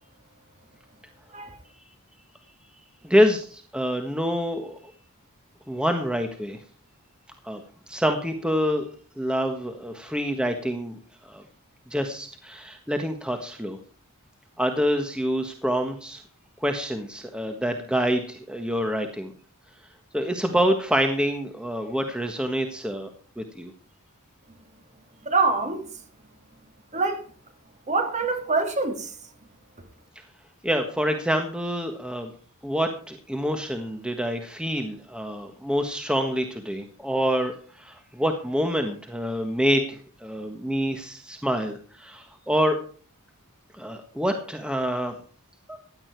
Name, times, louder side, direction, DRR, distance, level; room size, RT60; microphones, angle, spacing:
voice 1, 3.0-4.9 5.7-6.6 7.4-7.6 7.9-8.9 9.2-11.4 11.9-13.8 14.6-16.2 16.6-19.3 20.1-23.1 23.4-23.7 30.1-30.2 30.6-32.3 32.6-42.8 43.7-45.1 45.7-45.8, equal, 5° right, 1.4 m, -26 dB
voice 2, 25.2-25.9 26.9-27.2 27.9-29.1, right 3 dB, 35° right, 2.9 m, -25 dB
16.0 x 11.5 x 4.6 m
head